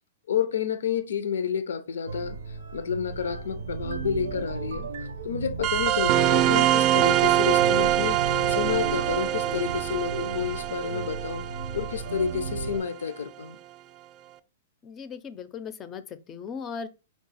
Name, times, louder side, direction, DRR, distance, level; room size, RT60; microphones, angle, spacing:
voice 1, 0.3-4.9 5.2-11.5 11.7-13.6, left 7 dB, 90° left, 0.5 m, -30 dB
sound 1, 2.1-12.8, right 4 dB, 85° right, 0.6 m, -35 dB
sound 2, 5.6-12.7, right 13 dB, 40° right, 0.3 m, -24 dB
voice 2, 14.8-16.9, left 6 dB, 25° left, 0.4 m, -38 dB
4.6 x 2.3 x 4.0 m
hypercardioid pair, 135°, 0 cm